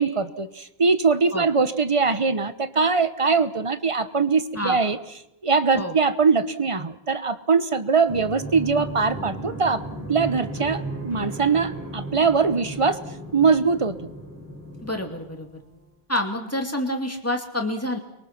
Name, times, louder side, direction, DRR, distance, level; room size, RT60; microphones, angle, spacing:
voice 1, 0.0-5.0 5.4-9.8 10.1-13.0 13.3-14.1, right 4 dB, 30° right, 12 dB, 1.1 m, -22 dB
sound 1, 8.1-15.6, right 1 dB, 15° right, 4.5 m, -35 dB
voice 2, 14.8-15.6 16.1-18.0, left 1 dB, 15° left, 3 dB, 2.5 m, -28 dB
30.0 x 23.0 x 6.0 m, 0.86 s
omnidirectional pair, 1.1 m